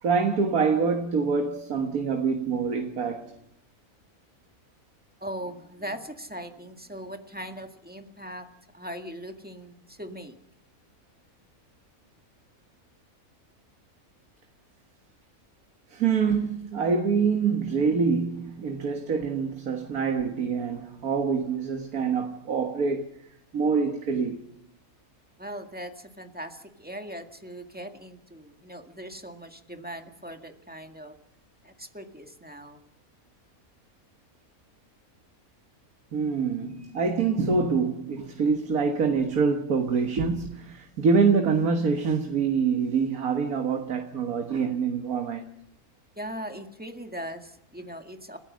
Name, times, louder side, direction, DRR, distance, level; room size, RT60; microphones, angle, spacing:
voice 1, 0.0-3.4 15.9-23.1 23.5-24.4 36.1-45.5, right 5 dB, 85° right, 1.9 m, -25 dB
voice 2, 5.2-8.5 8.7-10.4 25.4-31.1 31.6-32.8 46.2-48.4, equal, 5° right, 1.9 m, -40 dB
30.0 x 14.5 x 6.3 m
omnidirectional pair, 1.5 m